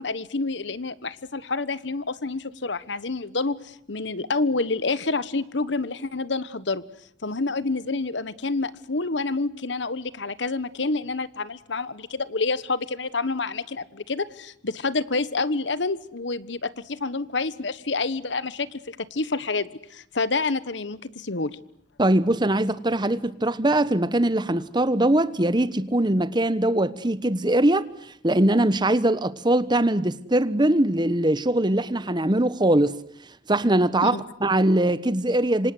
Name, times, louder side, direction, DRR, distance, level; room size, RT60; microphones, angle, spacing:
voice 1, 0.0-6.8 7.2-21.6 34.0-34.2, left 3 dB, 70° left, 1.3 m, -28 dB
voice 2, 22.0-27.8 28.2-33.0 33.5-35.7, right 1 dB, 25° right, 1.2 m, -21 dB
27.0 x 26.0 x 7.9 m
head